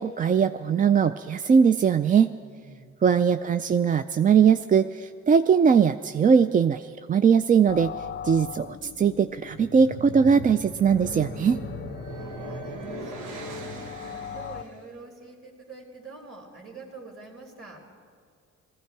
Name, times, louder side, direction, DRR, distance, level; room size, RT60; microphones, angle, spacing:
voice 1, 0.0-2.3 3.0-7.9 8.2-11.6, right 6 dB, 30° right, 11 dB, 0.3 m, -20 dB
voice 2, 2.4-3.0 12.0-13.7 14.0-17.8, right 3 dB, 65° right, -4 dB, 3.2 m, -46 dB
sound 1, 7.7-14.6, left 8 dB, 35° left, 0.5 m, -39 dB
sound 2, 9.4-14.8, right 3 dB, 90° right, 1.2 m, -39 dB
19.0 x 15.0 x 4.7 m, 2.3 s
cardioid pair, 90°, 30 cm